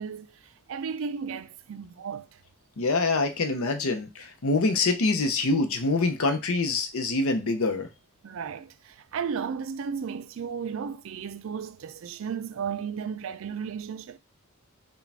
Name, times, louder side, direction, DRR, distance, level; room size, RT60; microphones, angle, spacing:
voice 1, 0.0-2.4 8.2-14.2, right 6 dB, 60° right, 0.3 m, -34 dB
voice 2, 2.8-7.9, left 3 dB, 70° left, 0.7 m, -25 dB
4.8 x 2.3 x 3.4 m
head